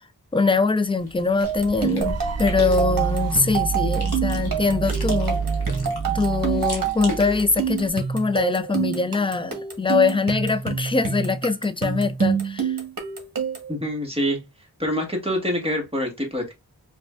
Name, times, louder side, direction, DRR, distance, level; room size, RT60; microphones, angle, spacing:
voice 1, 0.3-5.4 6.1-12.7, left 4 dB, 15° left, 0.3 m, -23 dB
Chewing mastication, 1.0-7.9, left 1 dB, 85° left, 1.0 m, -38 dB
sound 1, 1.4-13.7, right 7 dB, 60° right, 1.1 m, -28 dB
sound 2, 2.0-7.9, right 5 dB, 45° right, 0.5 m, -28 dB
voice 2, 13.7-14.4 14.8-16.5, equal, 15° right, 1.3 m, -25 dB
4.8 x 2.3 x 2.4 m
wide cardioid pair, 60°, 38 cm